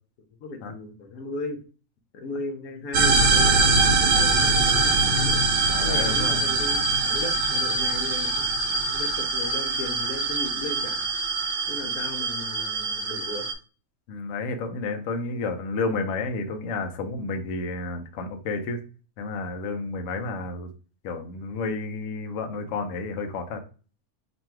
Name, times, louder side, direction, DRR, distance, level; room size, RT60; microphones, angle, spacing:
voice 1, 0.4-1.6 2.2-5.4 5.8-6.8 7.0-11.1 11.7-13.4, left 3 dB, 85° left, 5 dB, 1.2 m, -36 dB
sound 1, 2.9-13.5, right 3 dB, 80° right, 1.2 m, -23 dB
voice 2, 5.6-6.6 14.1-18.8 19.2-20.7 21.0-23.6, left 3 dB, 65° left, 6 dB, 0.9 m, -31 dB
3.1 x 2.6 x 4.4 m, 0.37 s
omnidirectional pair, 1.5 m